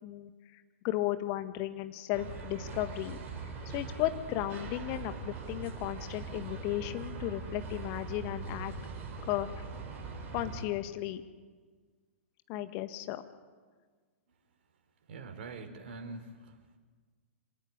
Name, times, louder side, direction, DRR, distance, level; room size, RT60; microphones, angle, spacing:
voice 1, 0.0-3.2 3.7-8.7 9.3-9.5 10.3-11.2 12.5-13.2, left 14 dB, 35° left, 10 dB, 1.7 m, -35 dB
sound 1, 2.1-10.6, right 4 dB, 25° right, 4.9 m, -41 dB
voice 2, 15.1-16.8, right 3 dB, 50° right, 6 dB, 3.7 m, -44 dB
26.0 x 17.5 x 10.0 m, 1.5 s
figure-of-eight pair, 110°, 7 cm